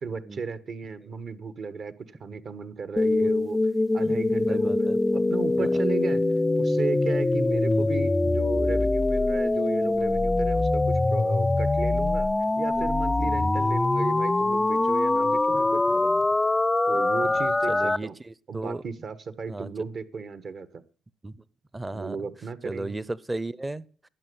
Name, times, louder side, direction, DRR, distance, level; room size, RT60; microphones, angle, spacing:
voice 1, 0.0-3.6 3.9-6.2 6.6-12.3 12.6-16.3 16.9-18.1 18.5-20.8 21.9-23.0, right 5 dB, 55° right, 1.3 m, -35 dB
sound 1, 3.0-18.0, left 2 dB, 15° left, 0.5 m, -23 dB
voice 2, 4.0-5.0 5.6-5.8 7.6-7.9 11.4-11.5 12.8-12.9 13.2-13.7 17.7-18.8 19.5-19.7 21.2-21.4 21.7-22.2 22.6-24.1, right 2 dB, 15° right, 0.7 m, -36 dB
12.5 x 8.6 x 7.9 m
cardioid pair, 90°, 0 cm